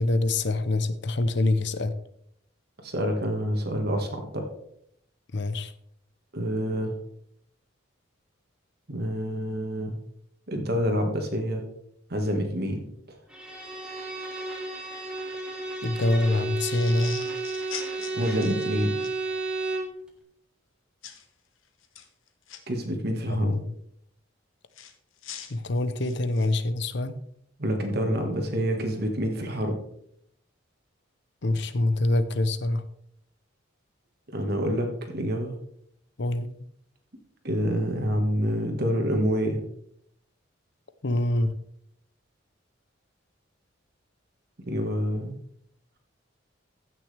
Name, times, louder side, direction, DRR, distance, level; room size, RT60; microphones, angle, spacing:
voice 1, 0.0-1.9 5.3-5.7 15.8-17.2 23.3-23.7 25.5-27.2 31.4-32.9 36.2-36.5 41.0-41.5, left 2 dB, 60° left, 12 dB, 0.8 m, -25 dB
voice 2, 2.8-4.4 6.3-7.0 8.9-10.0 10.5-11.6 12.1-13.2 18.1-19.0 22.7-23.5 27.6-29.8 34.3-35.5 37.4-39.6 44.6-45.3, equal, 50° right, 3 dB, 1.7 m, -27 dB
Bowed string instrument, 13.3-20.0, right 3 dB, 5° right, 1.4 m, -32 dB
sound 1, 16.7-19.2 21.0-21.2 21.8-22.6 24.7-26.6, left 9 dB, 85° left, 1.2 m, -42 dB
15.0 x 6.3 x 3.4 m, 0.71 s
head